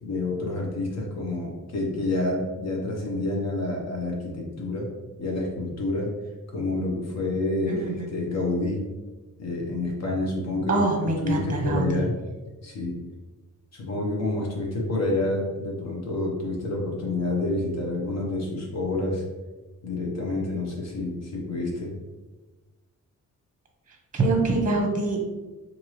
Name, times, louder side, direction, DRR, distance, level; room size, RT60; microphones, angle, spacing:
voice 1, 0.0-4.9 5.2-6.1 6.5-8.8 9.4-12.1 12.6-13.0 13.7-19.2 19.8-21.9, left 2 dB, 55° left, -1 dB, 1.0 m, -28 dB
voice 2, 7.7-8.1 10.7-11.8 24.1-25.2, right 2 dB, 25° right, 1 dB, 0.8 m, -24 dB
4.6 x 2.6 x 3.1 m, 1.2 s
wide cardioid pair, 155°, 31 cm